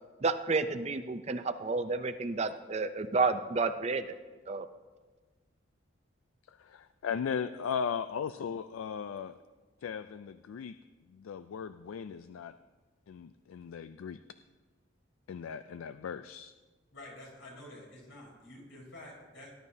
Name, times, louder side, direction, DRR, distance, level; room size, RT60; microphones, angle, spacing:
voice 1, 0.2-4.0 4.5-4.7, right 3 dB, 30° right, 10 dB, 0.4 m, -30 dB
voice 2, 6.5-9.4 9.8-10.8 11.1-12.5 13.1-14.2 15.3-16.5, left 7 dB, 85° left, 12 dB, 0.3 m, -37 dB
voice 3, 16.9-19.6, left 1 dB, 70° left, -3 dB, 4.3 m, -49 dB
18.5 x 11.0 x 2.7 m, 1.3 s
head